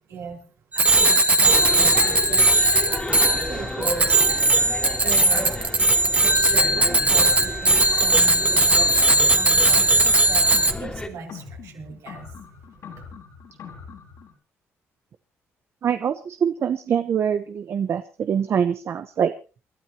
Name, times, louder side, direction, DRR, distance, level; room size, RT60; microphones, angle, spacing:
voice 1, 0.1-0.4 0.7-4.6 5.0-5.9 6.2-9.0 9.3-12.3, right 6 dB, 75° right, 2 dB, 4.7 m, -38 dB
Bicycle bell, 0.7-10.7, right 2 dB, 25° right, 1.7 m, -18 dB
sound 1, 1.5-11.1, left 2 dB, 20° left, 2.8 m, -33 dB
sound 2, 9.3-14.3, left 6 dB, 70° left, 4.9 m, -42 dB
voice 2, 15.8-19.3, right 8 dB, 55° right, 10 dB, 0.9 m, -24 dB
28.5 x 12.5 x 2.9 m, 0.33 s
cardioid pair, 90°, 5 cm